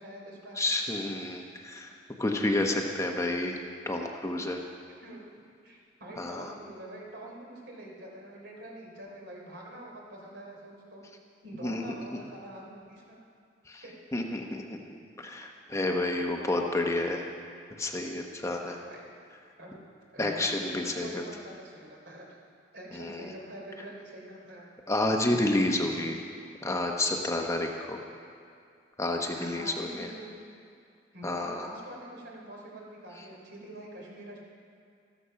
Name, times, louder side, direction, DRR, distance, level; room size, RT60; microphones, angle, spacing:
voice 1, 0.0-0.6 5.0-5.2 5.6-11.0 11.4-13.2 13.8-14.2 18.6-19.1 19.6-19.8 20.1-22.2 22.7-24.6 29.3-30.3 31.1-34.4, right 1 dB, 65° right, -2 dB, 3.4 m, -45 dB
voice 2, 0.6-1.9 2.2-3.6 3.9-4.6 6.2-6.5 11.6-11.8 13.7-13.8 14.1-14.8 15.2-17.3 17.8-18.8 20.2-21.2 22.9-23.3 24.9-26.2 26.6-28.0 29.0-30.1 31.2-31.7, left 2 dB, 15° left, 2 dB, 0.9 m, -30 dB
14.0 x 13.0 x 5.7 m, 2.3 s
head